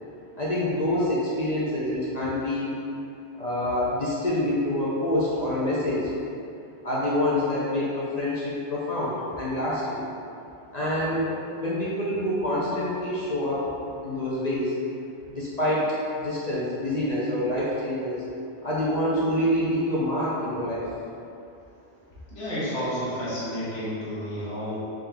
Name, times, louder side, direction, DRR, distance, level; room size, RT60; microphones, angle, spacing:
voice 1, 0.4-2.7 3.4-6.1 6.8-10.0 10.7-13.6 14.0-14.7 15.3-15.9 16.2-18.2 18.6-20.9, left 1 dB, 50° left, -7 dB, 0.5 m, -26 dB
voice 2, 22.3-24.8, equal, 75° left, -10 dB, 1.3 m, -31 dB
3.7 x 2.8 x 3.3 m, 2.6 s
omnidirectional pair, 1.2 m